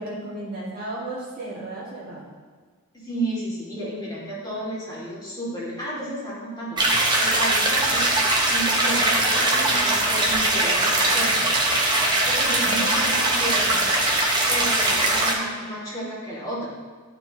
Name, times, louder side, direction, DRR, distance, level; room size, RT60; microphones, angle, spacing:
voice 1, 0.0-2.2 12.6-13.0 13.6-13.8, right 2 dB, 40° right, -7 dB, 2.1 m, -34 dB
voice 2, 2.9-8.1 8.5-11.5 12.3-13.8 14.5-16.7, right 1 dB, 20° left, -9 dB, 2.3 m, -32 dB
sound 1, 6.8-15.3, right 2 dB, 20° right, 0.9 m, -21 dB
12.5 x 4.6 x 2.9 m, 1.5 s
head